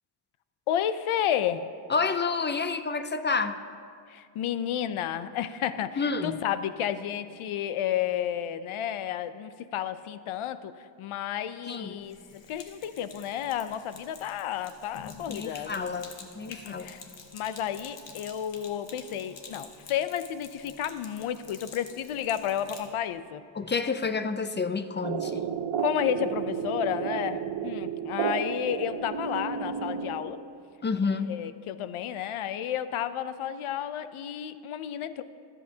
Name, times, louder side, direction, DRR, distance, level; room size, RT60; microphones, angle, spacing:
voice 1, 0.7-1.6 4.1-16.0 16.5-17.0 17.3-23.4 25.8-30.4 31.3-35.2, left 10 dB, 85° left, 13 dB, 0.6 m, -32 dB
voice 2, 1.9-3.6 6.0-6.4 11.7-11.9 15.3-16.9 23.5-25.4 30.8-31.3, left 4 dB, 25° left, 10 dB, 0.3 m, -29 dB
Sink (filling or washing), 12.0-22.9, left 5 dB, 65° left, 1.3 m, -48 dB
sound 1, 25.0-30.6, right 7 dB, 60° right, 0.7 m, -32 dB
24.5 x 8.3 x 2.8 m, 2.3 s
wide cardioid pair, 135°, 48 cm